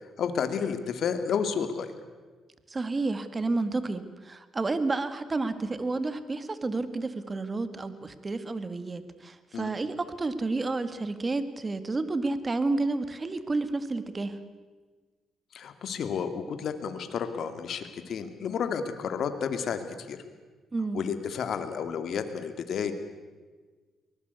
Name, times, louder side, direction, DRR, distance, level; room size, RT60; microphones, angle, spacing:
voice 1, 0.2-1.9 9.5-9.7 15.5-20.2 20.9-22.9, left 7 dB, 65° left, 8 dB, 2.5 m, -31 dB
voice 2, 2.7-14.4 20.7-21.0, right 3 dB, 25° right, 11 dB, 2.0 m, -30 dB
23.5 x 19.5 x 8.3 m, 1.4 s
cardioid pair, 90°, 0 cm